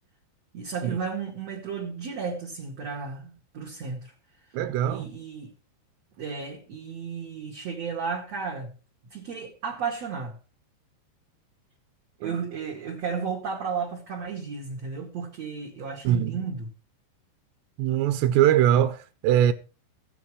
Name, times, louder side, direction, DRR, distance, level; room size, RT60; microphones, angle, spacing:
voice 1, 0.5-4.1 4.9-5.5 6.2-8.7 9.1-10.4 12.2-16.7, right 5 dB, 50° right, 2.3 m, -33 dB
voice 2, 4.5-5.1 12.2-12.4 16.0-16.4 17.8-19.5, right 11 dB, 80° right, 2.8 m, -22 dB
15.5 x 8.9 x 4.7 m
omnidirectional pair, 5.3 m